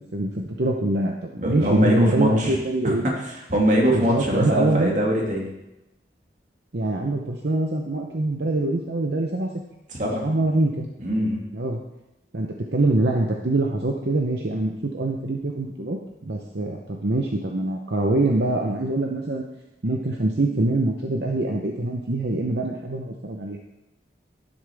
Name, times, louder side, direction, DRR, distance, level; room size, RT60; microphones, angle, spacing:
voice 1, 0.1-3.0 3.9-4.9 6.7-9.5 10.2-10.9 11.5-11.8 12.3-19.4 19.8-23.6, right 2 dB, 65° right, 1 dB, 0.8 m, -24 dB
voice 2, 1.4-2.6 2.8-2.9 3.3-5.5 9.9-10.3 11.0-11.4, equal, 45° right, -1 dB, 2.1 m, -22 dB
11.5 x 9.7 x 3.5 m, 0.95 s
head